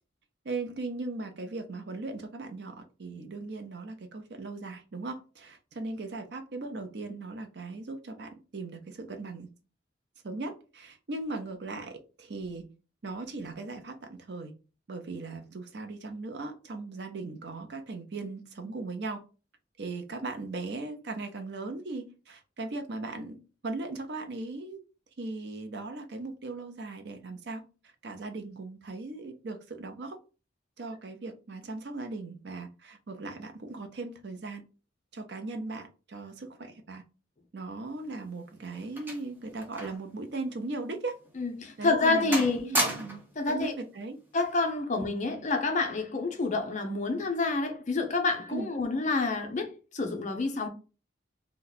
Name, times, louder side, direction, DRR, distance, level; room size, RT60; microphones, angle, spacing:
voice 1, 0.4-9.5 10.2-12.7 13.0-14.5 14.9-19.2 19.8-23.4 23.6-24.8 25.2-27.6 28.0-30.2 30.8-34.6 35.1-37.0 37.5-41.2 41.8-43.2 43.5-44.2 45.0-45.1 48.5-48.7, right 3 dB, 60° right, 0.6 m, -38 dB
sound 1, 38.0-40.1 40.4-40.6 41.2-41.4 41.8-42.1 42.3-43.4 44.4-44.6, right 1 dB, 10° right, 0.6 m, -33 dB
voice 2, 41.4-42.7 43.4-43.7 44.3-50.7, left 3 dB, 40° left, 0.5 m, -28 dB
2.8 x 2.3 x 3.9 m
head